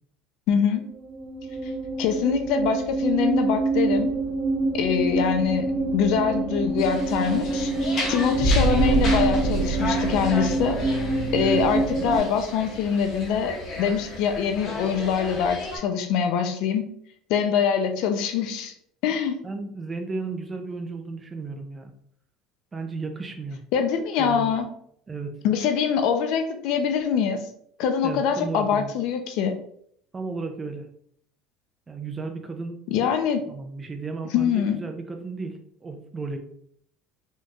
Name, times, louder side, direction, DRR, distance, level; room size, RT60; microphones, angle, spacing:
voice 1, 0.5-0.9 1.6-1.7 2.0-4.1 4.7-7.7 8.1-10.8 11.3-16.9 17.3-18.7 19.0-19.4 23.7-24.7 25.4-27.4 27.8-29.6 32.9-33.5 34.3-34.8, left 7 dB, 60° left, 7 dB, 0.5 m, -24 dB
sound 1, 0.9-12.2, right 2 dB, 40° right, 1.0 m, -25 dB
sound 2, 6.8-15.8, left 2 dB, 40° left, 1.2 m, -35 dB
voice 2, 19.4-21.9 22.7-23.6 24.2-24.6 25.1-25.3 28.0-28.9 30.1-30.9 31.9-32.8 33.5-36.4, right 4 dB, 15° right, 6 dB, 0.4 m, -34 dB
4.3 x 3.0 x 2.4 m, 0.66 s
cardioid pair, 155°, 0 cm